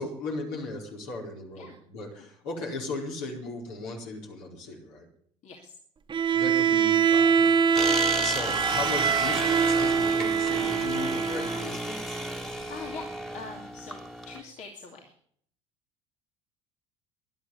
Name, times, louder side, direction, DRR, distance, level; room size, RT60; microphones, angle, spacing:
voice 1, 0.0-5.1 6.3-7.9 8.2-12.2, left 3 dB, 65° left, 0 dB, 4.7 m, -37 dB
voice 2, 5.4-5.7 8.8-9.0 12.4-13.1 13.3-15.1, left 4 dB, 50° left, 1 dB, 2.6 m, -44 dB
Bowed string instrument, 6.1-11.7, right 6 dB, 30° right, 1.4 m, -24 dB
sound 1, 7.7-14.4, equal, ahead, 1.9 m, -33 dB
12.5 x 11.0 x 9.8 m, 0.64 s
hypercardioid pair, 65°, 15 cm